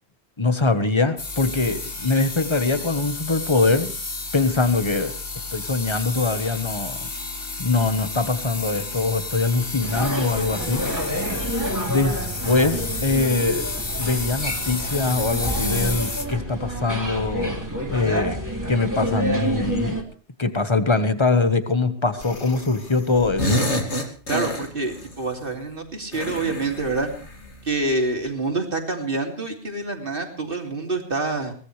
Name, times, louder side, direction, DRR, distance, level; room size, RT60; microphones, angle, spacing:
voice 1, 0.4-3.9 4.3-5.1 5.5-7.1 7.6-10.8 11.8-17.6 17.9-20.0 20.4-23.6, left 3 dB, 25° left, 9 dB, 1.4 m, -23 dB
sound 1, 1.2-16.2, left 3 dB, 55° left, 2.1 m, -31 dB
sound 2, 9.8-20.0, equal, 15° right, 2.8 m, -28 dB
sound 3, 22.2-22.9 23.1-25.1 26.1-27.6, left 1 dB, 75° left, 2.9 m, -27 dB
voice 2, 24.3-27.1 27.6-31.5, right 3 dB, 55° right, 2 dB, 3.1 m, -27 dB
22.5 x 18.0 x 3.3 m, 0.41 s
omnidirectional pair, 1.1 m